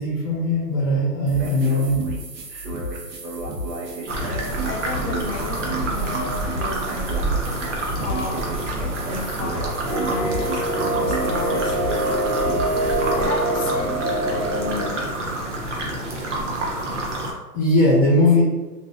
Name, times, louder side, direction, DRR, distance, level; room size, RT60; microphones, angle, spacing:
voice 1, 0.0-2.1 17.5-18.4, left 1 dB, ahead, -22 dB, 0.6 m, -19 dB
sound 1, 1.3-13.3, right 1 dB, 90° right, 0.8 m, -31 dB
sound 2, 4.1-17.3, right 2 dB, 50° right, 0.5 m, -28 dB
voice 2, 4.3-7.1 7.7-8.8 9.1-11.8 13.1-15.2, left 2 dB, 75° left, -1 dB, 0.7 m, -33 dB
sound 3, 9.9-14.9, right 1 dB, 70° right, 1.0 m, -25 dB
2.5 x 2.2 x 2.2 m, 1.2 s
hypercardioid pair, 170°, 49 cm